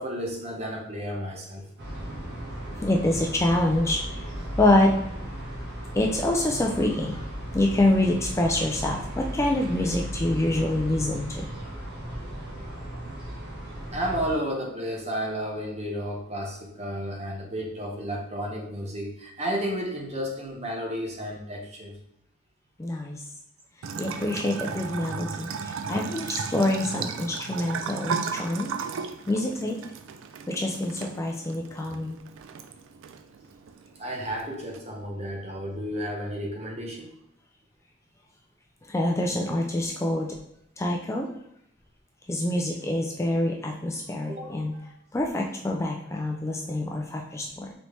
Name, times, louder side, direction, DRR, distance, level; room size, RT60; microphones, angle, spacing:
voice 1, 0.0-1.7 13.9-22.0 34.0-37.1 44.3-44.9, equal, 35° right, 0 dB, 0.8 m, -32 dB
sound 1, 1.8-14.3, equal, 60° right, 1.3 m, -36 dB
voice 2, 2.8-4.0 4.6-4.9 5.9-7.2 7.5-11.5 22.8-23.2 24.0-28.7 29.3-29.8 30.5-32.2 38.9-40.3 40.8-41.3 42.3-44.7 45.1-47.7, left 1 dB, 15° left, 1 dB, 0.3 m, -26 dB
Bathtub (filling or washing) / Trickle dribble, 23.8-34.8, right 5 dB, 80° right, 0.4 m, -35 dB
4.0 x 3.3 x 3.1 m, 0.74 s
head